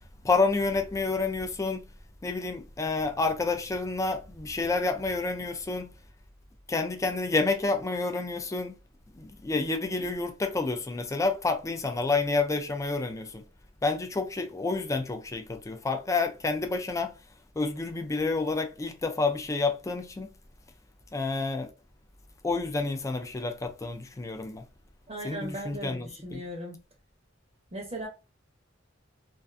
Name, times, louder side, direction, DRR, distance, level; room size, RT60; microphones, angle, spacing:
voice 1, 0.2-1.9 2.2-5.9 6.7-8.7 9.1-13.4 13.8-17.1 17.6-20.3 21.1-21.7 22.4-24.6 25.2-26.4, left 3 dB, 15° left, 0.3 m, -29 dB
voice 2, 25.1-26.8 27.7-28.1, equal, 30° right, 0.6 m, -37 dB
2.4 x 2.3 x 2.4 m
head